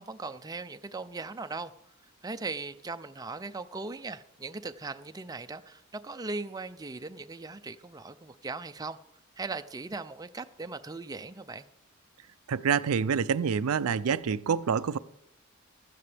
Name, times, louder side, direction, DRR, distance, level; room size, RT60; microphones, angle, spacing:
voice 1, 0.0-1.7 2.2-9.0 9.4-11.7, right 3 dB, 20° right, 0.5 m, -39 dB
voice 2, 12.5-15.0, right 6 dB, 85° right, 0.4 m, -27 dB
15.5 x 12.5 x 3.4 m
head